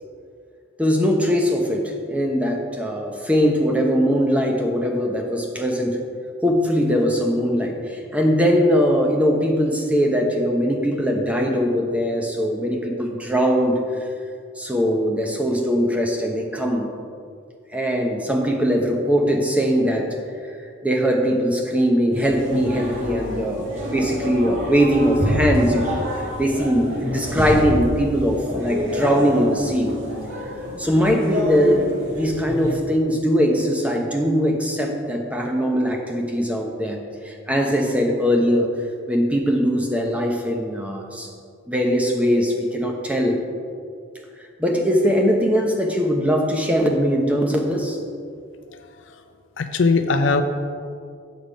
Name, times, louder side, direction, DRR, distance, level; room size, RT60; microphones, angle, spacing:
voice 1, 0.8-6.0 6.4-13.8 14.6-16.9 17.7-20.1 20.8-26.0 26.4-29.9 30.8-37.0 37.2-38.7 39.1-41.3 41.7-43.4 44.6-48.0, equal, 5° right, 1 dB, 0.8 m, -21 dB
sound 1, 22.1-32.7, equal, 65° right, 1.8 m, -27 dB
voice 2, 49.6-50.4, left 4 dB, 65° left, 8 dB, 0.5 m, -19 dB
7.9 x 6.7 x 5.0 m, 2.3 s
head